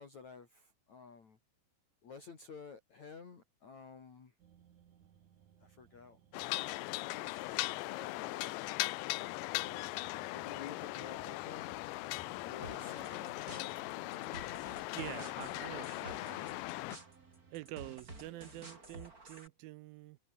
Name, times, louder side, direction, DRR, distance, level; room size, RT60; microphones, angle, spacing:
voice 1, 0.0-1.4 2.0-4.4 5.6-8.7 9.6-10.0 10.3-11.8 12.4-14.8 18.2-18.4, left 5 dB, 45° left, 4.2 m, -53 dB
sound 1, 4.4-18.3, right 9 dB, 50° right, 2.9 m, -65 dB
sound 2, 6.3-17.0, left 21 dB, 85° left, 2.8 m, -39 dB
sound 3, 12.6-19.5, right 2 dB, 20° right, 5.2 m, -52 dB
voice 2, 14.9-16.5 17.5-20.2, right 17 dB, 85° right, 2.1 m, -47 dB
omnidirectional pair, 5.1 m